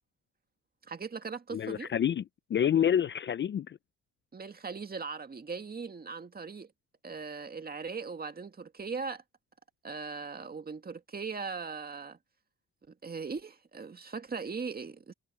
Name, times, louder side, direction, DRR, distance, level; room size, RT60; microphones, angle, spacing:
voice 1, 0.8-1.9 4.3-6.7 7.0-9.2 9.8-12.2 12.8-15.1, right 5 dB, 30° right, 2.1 m, -39 dB
voice 2, 1.5-2.2 2.5-3.8, left 9 dB, 40° left, 0.5 m, -27 dB
cardioid pair, 90°, 30 cm